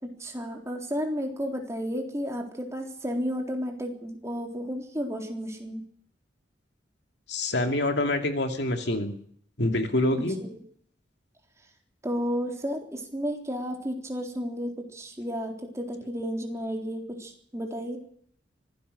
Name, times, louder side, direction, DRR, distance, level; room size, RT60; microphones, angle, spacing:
voice 1, 0.0-5.8 10.2-10.6 12.0-18.0, equal, 15° right, 2 dB, 3.8 m, -32 dB
voice 2, 7.3-9.1 9.6-10.4, left 1 dB, 65° left, 5 dB, 2.5 m, -26 dB
24.5 x 17.0 x 6.6 m, 0.62 s
head